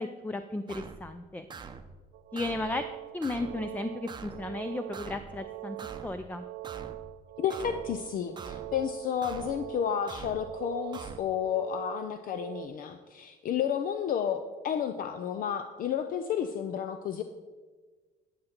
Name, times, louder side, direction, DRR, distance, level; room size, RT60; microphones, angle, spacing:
voice 1, 0.0-1.5 2.3-2.8 3.1-5.8 6.0-6.4, left 2 dB, 10° left, 9 dB, 0.4 m, -34 dB
sound 1, 0.7-1.1 1.5-1.9 2.4-2.8 3.2-3.6 4.1-4.5 4.9-5.3 5.8-6.2 6.6-7.1 7.5-7.9 8.4-8.8 9.2-9.6 10.1-10.5 10.9-11.2, right 5 dB, 25° right, 0.7 m, -44 dB
sound 2, 2.1-12.7, right 16 dB, 75° right, 0.4 m, -43 dB
voice 2, 7.4-17.2, left 8 dB, 55° left, 8 dB, 0.6 m, -31 dB
12.5 x 6.6 x 4.4 m, 1.4 s
cardioid pair, 110°, 17 cm